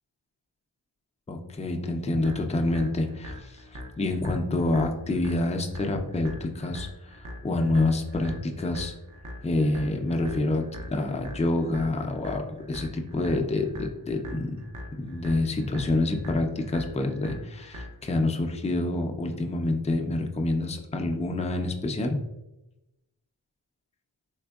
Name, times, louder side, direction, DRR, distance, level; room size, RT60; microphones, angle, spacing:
voice 1, 1.3-8.9 9.4-14.6 15.0-22.2, left 2 dB, 15° left, 3 dB, 0.4 m, -27 dB
sound 1, 2.2-18.2, equal, 45° right, 0.6 m, -42 dB
3.6 x 3.3 x 2.3 m, 0.95 s
wide cardioid pair, 45°, 43 cm